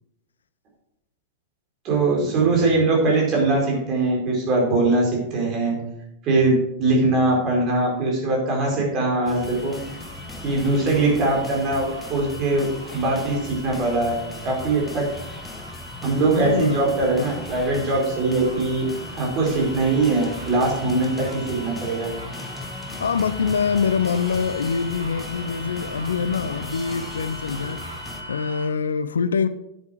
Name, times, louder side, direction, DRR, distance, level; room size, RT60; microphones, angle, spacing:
voice 1, 1.8-5.8 6.2-9.8 10.4-12.7 12.9-14.1 14.4-15.0 16.0-18.8 19.2-22.1, right 2 dB, 35° right, 4.7 m, -21 dB
sound 1, 9.3-28.2, left 2 dB, 15° left, 1.4 m, -38 dB
sound 2, 9.3-28.7, equal, 80° right, 1.7 m, -40 dB
voice 2, 16.4-17.3 20.8-21.1 22.6-22.7 23.0-27.8 28.3-29.5, left 6 dB, 70° left, 0.5 m, -25 dB
9.8 x 8.1 x 5.0 m
figure-of-eight pair, 90°, 0 cm